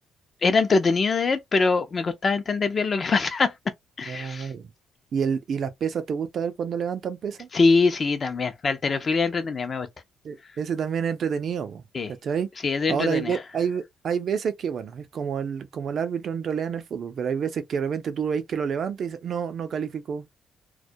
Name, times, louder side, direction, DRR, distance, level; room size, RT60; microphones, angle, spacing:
voice 1, 0.4-3.5 4.0-4.5 7.5-9.9 11.9-12.1 12.6-13.4, left 4 dB, 40° left, 0.5 m, -23 dB
voice 2, 4.1-4.7 5.1-7.5 10.2-11.8 12.2-12.5 12.9-20.3, right 7 dB, 60° right, 0.5 m, -28 dB
2.2 x 2.1 x 2.6 m
cardioid pair, 90°, 0 cm